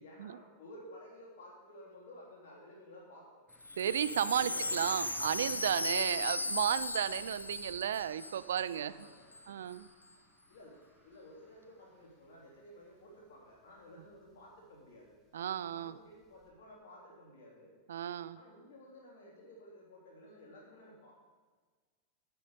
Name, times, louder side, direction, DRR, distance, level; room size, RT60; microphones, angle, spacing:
voice 1, 0.0-3.5 4.3-4.7 8.7-9.6 10.5-15.2 15.7-17.7 18.3-21.1, left 1 dB, 60° left, -3 dB, 3.3 m, -54 dB
Wind chime, 3.5-8.8 9.0-9.1 9.3-9.8, left 2 dB, 80° left, 0.3 m, -37 dB
sound 1, 3.5-16.5, right 1 dB, ahead, 2.4 m, -59 dB
voice 2, 3.8-8.9 9.5-9.9 15.3-15.9 17.9-18.4, right 10 dB, 60° right, 16 dB, 0.4 m, -33 dB
9.1 x 8.4 x 5.3 m, 1.5 s
figure-of-eight pair, 90°, 0 cm